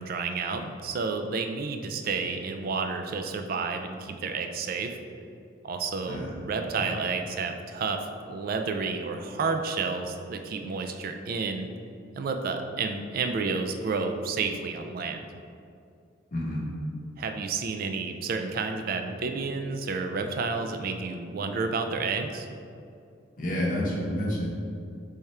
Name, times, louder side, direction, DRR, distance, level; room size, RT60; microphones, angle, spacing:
voice 1, 0.0-5.0 5.6-8.0 8.3-11.7 12.2-15.2 17.2-22.5, right 4 dB, 50° right, 5 dB, 0.3 m, -30 dB
voice 2, 16.3-16.6 23.4-24.5, left 1 dB, 45° left, -4 dB, 0.8 m, -29 dB
3.5 x 3.3 x 4.2 m, 2.4 s
head